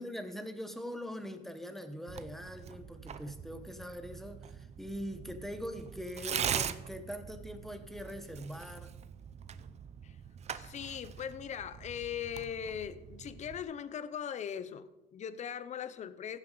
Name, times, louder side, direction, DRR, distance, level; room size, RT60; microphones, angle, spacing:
voice 1, 0.0-8.9, equal, ahead, 8 dB, 1.0 m, -42 dB
Tearing, 2.1-13.6, right 8 dB, 40° right, 0.6 m, -42 dB
voice 2, 10.5-16.4, left 8 dB, 45° left, 14 dB, 0.7 m, -40 dB
16.0 x 7.3 x 3.9 m, 1.0 s
cardioid pair, 110°, 17 cm